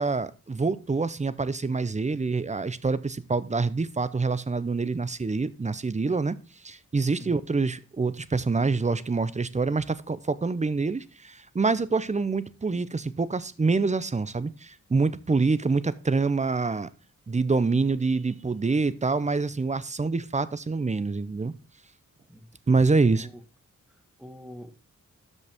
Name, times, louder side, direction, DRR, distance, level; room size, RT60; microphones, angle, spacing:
voice 1, 0.0-6.4 6.6-16.9 17.3-21.5 22.7-23.3, right 4 dB, 25° right, 16 dB, 0.6 m, -26 dB
voice 2, 22.3-22.7 23.1-23.3 23.9-24.7, equal, ahead, 7 dB, 1.5 m, -45 dB
12.5 x 5.4 x 3.4 m, 0.33 s
wide cardioid pair, 135°, 31 cm